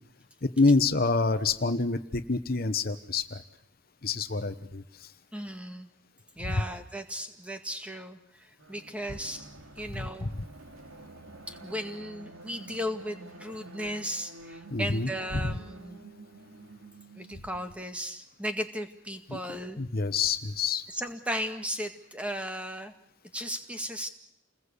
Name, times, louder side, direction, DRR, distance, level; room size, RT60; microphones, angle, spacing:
voice 1, 0.4-3.4 4.0-5.1 6.5-6.6 9.9-10.3 14.7-15.1 15.4-15.5 19.3-19.4 19.8-20.8, left 3 dB, 45° left, 10 dB, 1.1 m, -27 dB
voice 2, 5.3-5.9 6.4-9.5 9.8-10.3 11.5-16.0 17.2-19.8 20.9-22.9 23.3-24.1, equal, 5° right, 6 dB, 1.9 m, -36 dB
sound 1, 8.6-17.8, right 2 dB, 80° right, 2.7 m, -49 dB
29.0 x 20.5 x 8.3 m, 0.78 s
head